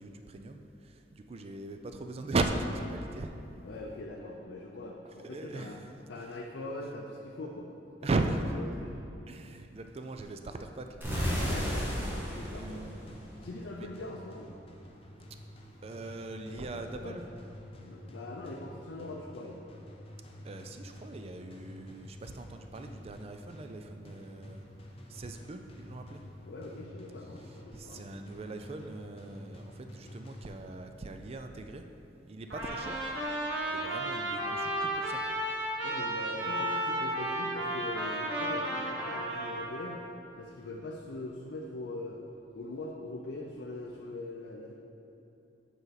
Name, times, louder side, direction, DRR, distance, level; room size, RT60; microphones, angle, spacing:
voice 1, 0.0-3.4 5.0-6.5 6.8-6.9 8.0-8.7 9.3-11.0 12.4-13.1 13.6-13.9 15.8-17.3 20.4-24.6 25.1-26.2 27.2-31.9 32.3-33.1 33.7-35.2 36.4-36.5, right 2 dB, 35° right, 6 dB, 0.4 m, -38 dB
voice 2, 3.6-5.8 6.1-7.7 8.0-8.1 8.6-8.9 11.5-12.9 13.3-14.5 16.5-17.2 17.8-19.6 26.4-28.1 35.8-40.0 40.4-42.2 42.5-44.7, left 2 dB, 75° left, -1 dB, 0.5 m, -42 dB
sound 1, 11.0-13.9, equal, 10° right, 1.2 m, -33 dB
sound 2, 12.0-31.0, left 1 dB, 30° left, 0.6 m, -50 dB
Trumpet, 32.5-40.0, right 1 dB, 80° right, 1.1 m, -33 dB
8.0 x 4.5 x 4.0 m, 2.8 s
head